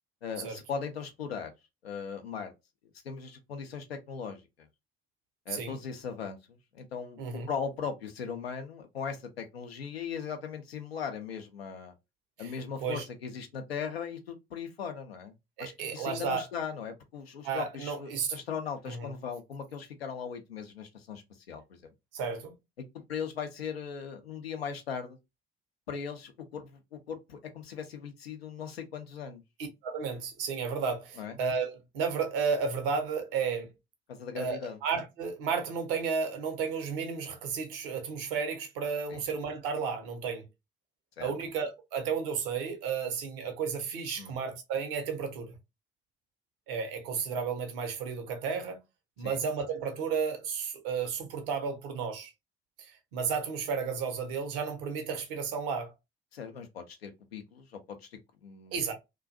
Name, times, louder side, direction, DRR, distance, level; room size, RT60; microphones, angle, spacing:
voice 1, 0.2-1.5 1.8-2.5 3.0-4.7 5.5-11.9 12.4-15.3 15.6-21.8 22.8-25.2 25.9-29.4 31.2-31.4 34.1-34.8 39.1-39.2 41.2-41.3 44.2-44.4 49.2-49.4 56.3-58.8, left 6 dB, 85° left, 0.5 m, -39 dB
voice 2, 15.6-16.4 17.4-18.3 19.0-19.1 22.1-22.5 29.8-33.7 34.3-40.4 41.2-45.5 46.7-48.8 49.2-52.3 52.8-55.9 58.7-58.9, right 6 dB, 65° right, 0.7 m, -33 dB
2.4 x 2.2 x 2.4 m
figure-of-eight pair, 50°, 30 cm